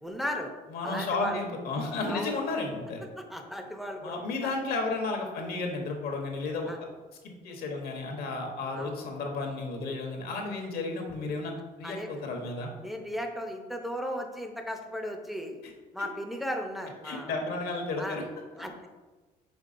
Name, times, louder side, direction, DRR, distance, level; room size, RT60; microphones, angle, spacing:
voice 1, 0.0-0.5 0.8-1.4 2.0-2.4 3.3-4.5 6.7-6.8 8.7-8.9 11.8-12.1 12.8-15.6 15.9-17.3 18.0-18.2 18.6-18.7, equal, ahead, 2 dB, 0.5 m, -36 dB
voice 2, 0.7-3.1 4.0-6.7 7.2-11.5 11.8-12.7 15.6-15.7 17.0-18.2, left 3 dB, 65° left, 2 dB, 0.9 m, -33 dB
5.3 x 3.6 x 2.5 m, 1.3 s
cardioid pair, 110°, 17 cm